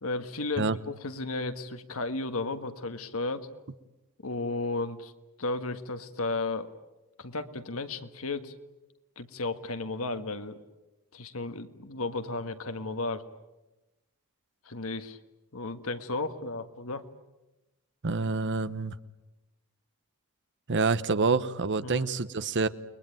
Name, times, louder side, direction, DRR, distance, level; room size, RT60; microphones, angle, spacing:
voice 1, 0.0-3.5 4.2-5.1 5.4-6.8 7.2-8.5 9.2-10.6 11.1-13.3 14.7-15.2 15.5-17.0 21.8-22.1, left 3 dB, 70° left, 9 dB, 1.7 m, -34 dB
voice 2, 18.0-18.9 20.7-22.7, right 4 dB, 55° right, 14 dB, 1.0 m, -27 dB
30.0 x 21.5 x 9.2 m, 1.0 s
head